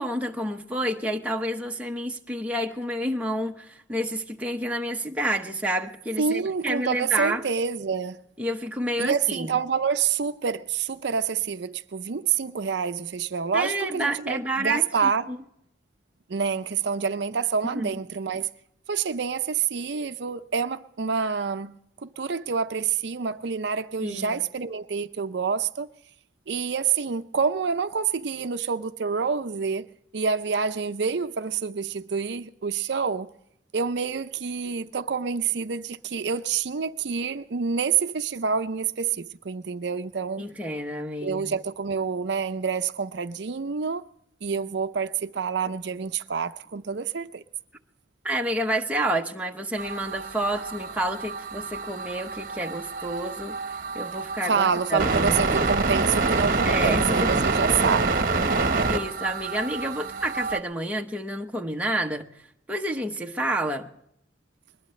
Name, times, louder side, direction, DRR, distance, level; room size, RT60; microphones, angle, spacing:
voice 1, 0.0-7.4 8.4-9.5 13.5-15.4 17.7-17.9 24.0-24.4 40.4-41.6 48.2-55.7 56.6-57.4 58.4-58.6 58.9-62.3 62.7-63.9, right 1 dB, 5° right, 0.9 m, -29 dB
voice 2, 6.2-8.2 9.0-15.2 16.3-18.5 18.9-21.7 22.0-25.9 26.5-29.9 30.1-33.3 33.7-40.5 41.2-44.0 44.4-47.4 54.5-58.2, right 6 dB, 65° right, 0.5 m, -27 dB
sound 1, 49.8-60.6, right 3 dB, 45° right, 1.1 m, -27 dB
21.5 x 20.5 x 3.2 m
head